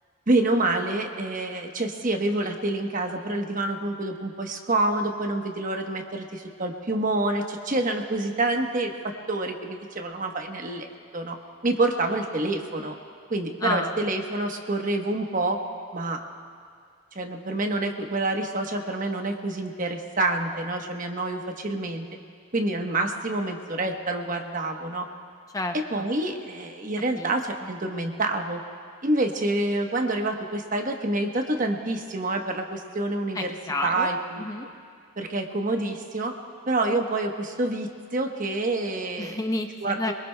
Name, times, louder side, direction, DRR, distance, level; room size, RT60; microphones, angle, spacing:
voice 1, 0.3-10.9 11.1-11.4 11.6-12.9 13.3-15.6 15.9-16.2 17.1-22.1 22.5-25.1 25.9-28.6 29.0-33.5 33.8-34.4 35.2-36.3 36.7-39.4 39.8-40.0, right 2 dB, 40° right, 3 dB, 1.1 m, -27 dB
voice 2, 13.6-14.1 25.5-26.1 27.1-27.3 27.6-27.7 33.3-34.1 34.4-34.7 39.2-40.1, left 2 dB, 15° left, 5 dB, 0.6 m, -30 dB
23.5 x 22.0 x 2.2 m, 2.2 s
head